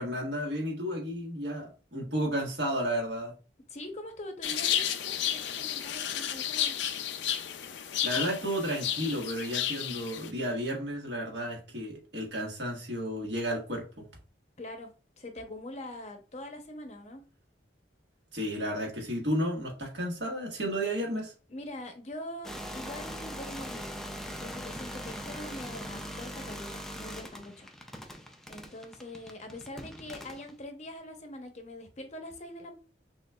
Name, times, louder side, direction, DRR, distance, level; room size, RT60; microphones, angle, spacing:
voice 1, 0.0-3.3 8.0-14.1 18.3-21.3, equal, 70° right, 1.3 m, -32 dB
voice 2, 3.7-6.7 14.6-14.9 15.2-17.2 21.5-24.0 24.3-27.7 28.5-32.7, left 1 dB, 40° left, 0.7 m, -43 dB
sound 1, 4.4-10.3, left 10 dB, 75° left, 0.4 m, -32 dB
sound 2, 22.4-30.5, equal, ahead, 0.4 m, -41 dB
6.0 x 2.4 x 2.3 m
head